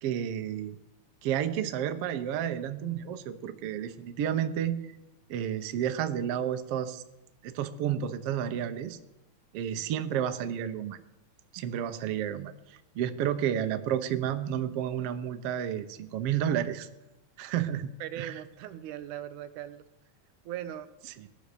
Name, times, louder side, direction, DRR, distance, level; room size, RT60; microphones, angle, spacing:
voice 1, 0.0-0.8 1.2-4.8 5.3-7.0 7.4-9.0 9.5-11.0 11.5-16.9 17.4-18.4 21.2-21.3, right 9 dB, 65° right, 8 dB, 1.7 m, -31 dB
voice 2, 18.0-19.8 20.5-20.9, right 11 dB, 80° right, 10 dB, 2.3 m, -39 dB
18.0 x 11.5 x 6.8 m, 0.94 s
omnidirectional pair, 3.6 m